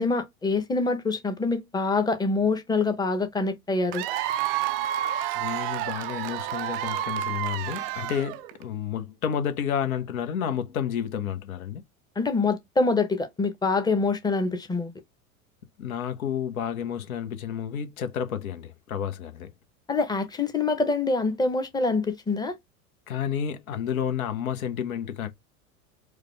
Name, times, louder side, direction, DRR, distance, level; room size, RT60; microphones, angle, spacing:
voice 1, 0.0-4.0 12.2-14.9 19.9-22.5, left 3 dB, 10° left, 0.8 m, -25 dB
Cheering / Applause / Crowd, 3.9-8.6, right 13 dB, 40° right, 0.4 m, -30 dB
voice 2, 5.3-11.8 15.8-19.5 23.1-25.3, left 8 dB, 65° left, 1.0 m, -30 dB
4.9 x 2.2 x 3.2 m
figure-of-eight pair, 85°, 45 cm